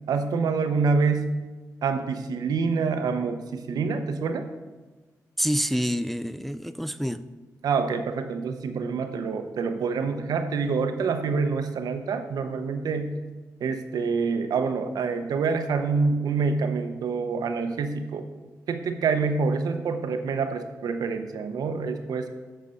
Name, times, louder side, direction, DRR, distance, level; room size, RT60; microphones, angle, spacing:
voice 1, 0.1-1.3 1.8-4.5 7.6-13.2 13.6-18.3 18.7-22.3, right 4 dB, 75° right, 7 dB, 0.7 m, -26 dB
voice 2, 5.4-7.3, equal, ahead, 12 dB, 0.3 m, -27 dB
7.7 x 4.1 x 6.4 m, 1.2 s
cardioid pair, 60°, 7 cm